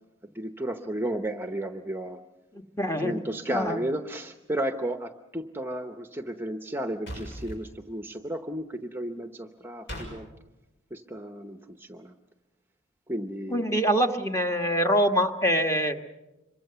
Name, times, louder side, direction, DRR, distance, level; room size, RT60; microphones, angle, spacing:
voice 1, 0.2-2.2 2.8-10.3 10.9-12.1 13.1-13.7, right 1 dB, 10° right, 7 dB, 0.8 m, -33 dB
voice 2, 2.8-3.1 3.5-3.8 13.5-16.0, equal, 15° left, 6 dB, 1.3 m, -24 dB
sound 1, 7.1-7.6 9.9-10.1, equal, 60° left, 7.0 m, -37 dB
26.5 x 23.5 x 6.8 m, 1.0 s
head